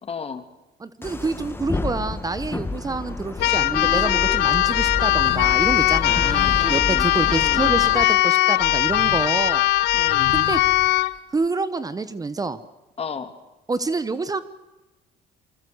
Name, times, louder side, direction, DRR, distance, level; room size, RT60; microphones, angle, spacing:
voice 1, 0.0-0.4 6.0-7.8 9.9-10.3 13.0-13.3, left 6 dB, 35° left, 9 dB, 2.5 m, -33 dB
voice 2, 0.8-9.6 10.3-10.6 11.3-12.6 13.7-14.4, right 3 dB, 20° right, 13 dB, 1.2 m, -27 dB
sound 1, 1.0-8.1, left 3 dB, 15° left, 1.5 m, -30 dB
Keyboard (musical), 3.4-11.1, left 16 dB, 80° left, 1.0 m, -20 dB
sound 2, 5.0-5.6 5.9-8.1 8.6-11.5, left 10 dB, 50° left, 1.2 m, -37 dB
27.5 x 25.0 x 8.0 m, 1.0 s
cardioid pair, 110°, 17 cm